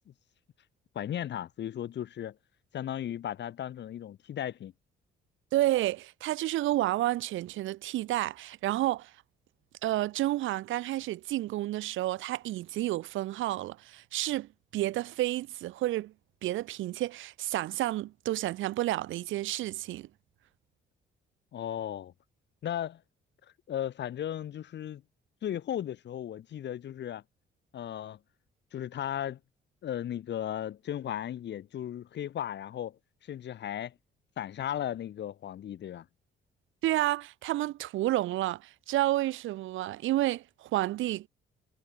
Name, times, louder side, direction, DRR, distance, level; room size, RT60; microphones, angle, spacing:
voice 1, 0.9-2.4 2.7-4.7 21.5-22.1 22.6-23.0 23.7-25.0 25.4-27.2 27.7-28.2 28.7-29.4 29.8-33.9 34.4-36.0, left 10 dB, 60° left, 1.3 m, -36 dB
voice 2, 5.5-9.1 9.8-16.1 16.4-20.1 36.8-41.3, right 15 dB, 80° right, 0.7 m, -30 dB
cardioid pair, 90°, 20 cm